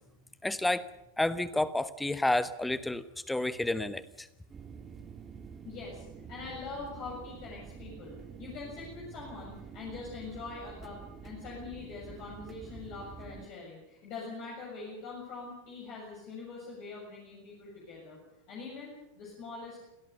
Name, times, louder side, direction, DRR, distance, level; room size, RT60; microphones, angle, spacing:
voice 1, 0.4-0.8 1.2-4.3, left 2 dB, 5° left, 15 dB, 1.1 m, -30 dB
sound 1, 4.5-13.5, right 6 dB, 20° right, 1.6 m, -48 dB
voice 2, 5.6-18.2 18.5-19.8, left 4 dB, 40° left, -3 dB, 7.0 m, -43 dB
26.0 x 17.0 x 6.9 m, 0.93 s
figure-of-eight pair, 90°, 0 cm